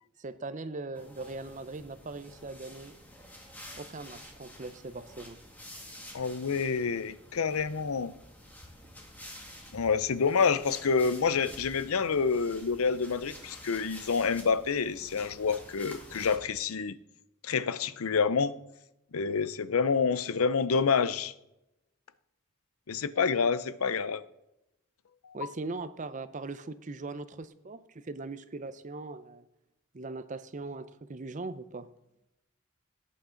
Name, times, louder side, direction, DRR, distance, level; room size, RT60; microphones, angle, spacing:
voice 1, 0.2-3.0 3.8-5.4 25.3-29.5 29.9-31.9, right 3 dB, 35° right, 0.6 m, -40 dB
sound 1, 0.9-16.4, left 1 dB, 10° left, 1.8 m, -49 dB
voice 2, 6.1-8.1 9.7-17.0 17.4-18.5 19.1-21.3 22.9-24.2 25.2-25.3, left 5 dB, 85° left, 0.6 m, -28 dB
17.0 x 8.5 x 3.8 m
head